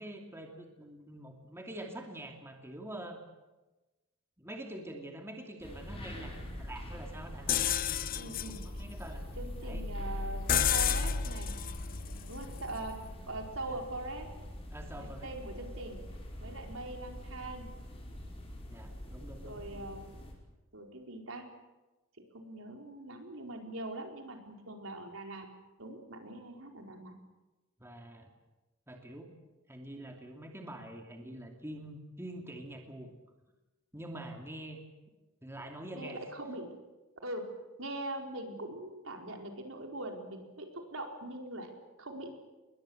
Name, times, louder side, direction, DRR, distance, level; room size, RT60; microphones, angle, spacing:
voice 1, 0.0-3.2 4.4-8.3 8.6-9.2 9.6-9.8 13.7-13.8 14.7-15.3 18.7-19.6 27.8-28.3 28.9-29.4 29.7-33.1 33.9-34.8 35.4-36.2, right 1 dB, 10° right, 2 dB, 2.7 m, -45 dB
sound 1, 5.6-20.3, equal, 30° left, 5.5 m, -45 dB
sound 2, 7.5-13.3, left 7 dB, 45° left, 0.8 m, -33 dB
voice 2, 8.2-8.6 9.4-11.5 12.3-14.3 15.0-16.0 16.4-17.7 19.4-20.1 20.7-21.4 22.2-25.5 25.8-27.1 35.9-36.7 37.2-37.5 37.8-42.3, right 1 dB, 70° right, 3 dB, 4.4 m, -42 dB
27.5 x 22.0 x 7.9 m, 1.1 s
head